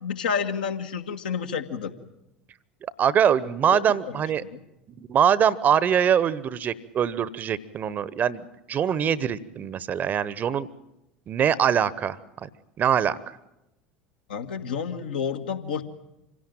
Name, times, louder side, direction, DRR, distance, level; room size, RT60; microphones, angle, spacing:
voice 1, 0.0-1.9 3.7-4.2 4.5-4.6 14.3-15.8, left 6 dB, 70° left, 5 dB, 1.7 m, -30 dB
voice 2, 3.0-4.4 5.1-8.4 8.7-10.7 11.3-12.5 12.8-13.2, right 8 dB, 35° right, 19 dB, 1.0 m, -23 dB
26.0 x 17.0 x 9.1 m, 0.94 s
figure-of-eight pair, 70°, 5 cm